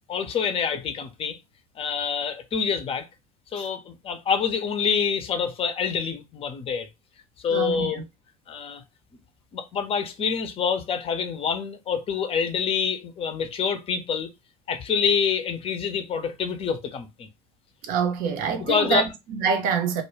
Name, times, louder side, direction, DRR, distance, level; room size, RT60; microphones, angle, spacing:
voice 1, 0.1-1.4 1.8-3.1 3.5-6.9 7.4-8.0 8.5-8.8 9.5-14.3 14.7-17.3 18.6-19.1, left 6 dB, 30° left, 0.6 m, -26 dB
voice 2, 7.5-8.0 17.8-20.0, right 6 dB, 50° right, 0.7 m, -26 dB
2.2 x 2.1 x 3.1 m
hypercardioid pair, 75°, 19 cm